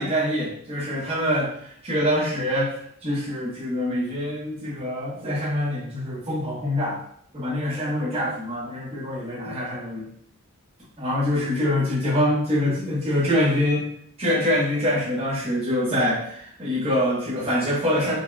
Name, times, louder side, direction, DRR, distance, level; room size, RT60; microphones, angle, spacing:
voice 1, 0.0-2.8 3.0-7.0 7.3-10.1 11.0-13.8 14.2-18.2, left 1 dB, 25° right, -8 dB, 1.1 m, -25 dB
4.2 x 2.9 x 2.3 m, 0.65 s
head